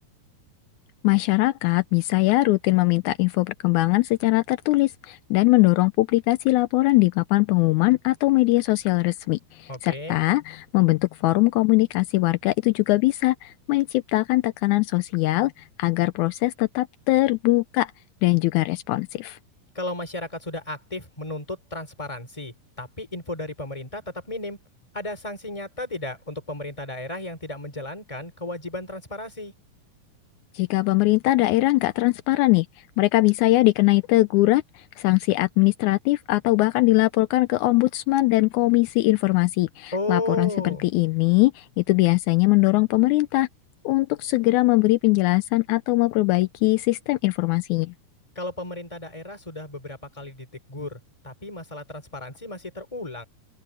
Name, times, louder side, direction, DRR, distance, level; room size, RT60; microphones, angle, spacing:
voice 1, 1.0-15.5 15.8-17.9 18.2-19.4 30.6-32.7 33.0-34.6 35.0-43.5 43.9-47.9, left 20 dB, 85° left, 1.7 m, -21 dB
voice 2, 9.7-10.2 19.7-24.6 24.9-29.5 39.9-40.8 48.4-53.2, left 2 dB, 10° left, 3.6 m, -34 dB
open air
omnidirectional pair, 4.0 m